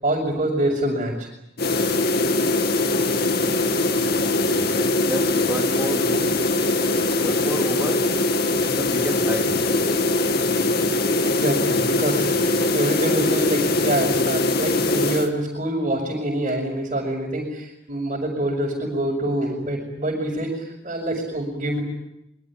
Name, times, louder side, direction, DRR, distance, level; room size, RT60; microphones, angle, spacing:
voice 1, 0.0-1.3 11.2-21.8, right 1 dB, 35° right, -2 dB, 6.1 m, -25 dB
sound 1, 1.6-15.3, left 2 dB, 55° left, 2.3 m, -21 dB
voice 2, 4.2-6.4 7.2-8.0 8.6-9.8, equal, 10° right, 2 dB, 2.6 m, -32 dB
26.0 x 23.5 x 8.9 m, 0.86 s
head